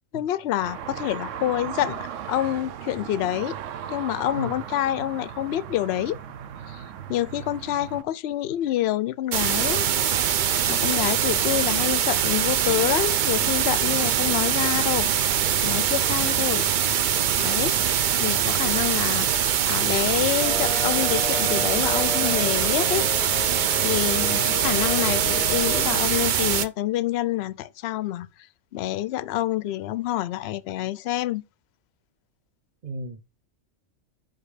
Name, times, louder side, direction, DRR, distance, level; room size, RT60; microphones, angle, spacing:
voice 1, 0.1-3.6 3.9-6.2 6.7-6.8 7.1-9.9 10.7-15.1 15.6-16.7 17.4-23.1 23.8-28.3 28.7-31.4, left 13 dB, 65° left, 0.7 m, -27 dB
sound 1, 0.6-8.0, right 9 dB, 75° right, 1.0 m, -37 dB
sound 2, 9.3-26.7, right 9 dB, 60° right, 0.5 m, -23 dB
voice 2, 10.8-11.3 24.3-24.5 24.9-25.2 32.8-33.2, right 2 dB, 40° right, 0.8 m, -37 dB
sound 3, 20.4-26.0, left 2 dB, 5° left, 0.9 m, -33 dB
5.2 x 5.1 x 4.9 m
omnidirectional pair, 1.3 m